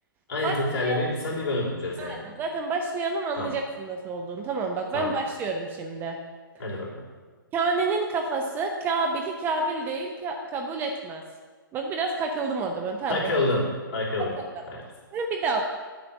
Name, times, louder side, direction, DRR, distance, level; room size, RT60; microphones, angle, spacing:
voice 1, 0.3-2.2 3.4-3.5 4.9-5.2 6.6-7.0 13.1-14.4 14.7-14.8, left 2 dB, 40° left, -4 dB, 3.3 m, -28 dB
voice 2, 2.0-6.2 7.5-11.2 11.7-13.3 14.4-14.5 15.1-15.6, right 3 dB, 15° right, 2 dB, 0.6 m, -29 dB
9.7 x 5.1 x 7.1 m, 1.4 s
figure-of-eight pair, 130°, 12 cm